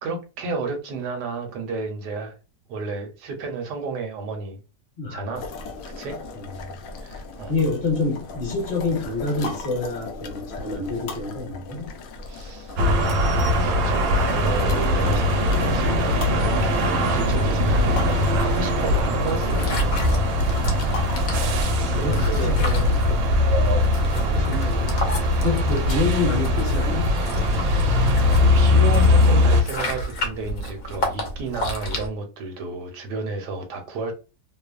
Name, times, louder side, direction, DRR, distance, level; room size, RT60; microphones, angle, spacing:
voice 1, 0.0-2.4 2.7-4.6 5.1-5.5 6.0-6.2 7.0-7.5 12.2-20.5 21.3-21.6 21.9-22.6 23.6-23.9 27.5-28.2 28.5-34.1, right 3 dB, 70° right, 1.1 m, -32 dB
sound 1, 5.3-23.0, left 3 dB, 90° left, 0.7 m, -37 dB
voice 2, 6.3-6.7 7.5-11.9 20.7-20.9 21.9-23.0 23.5-25.1 25.4-27.1, left 3 dB, 35° left, 1.2 m, -27 dB
sound 2, 12.8-29.6, left 1 dB, 90° right, 1.3 m, -20 dB
sound 3, 19.2-32.1, equal, 65° left, 0.9 m, -31 dB
3.0 x 2.0 x 2.3 m
omnidirectional pair, 2.0 m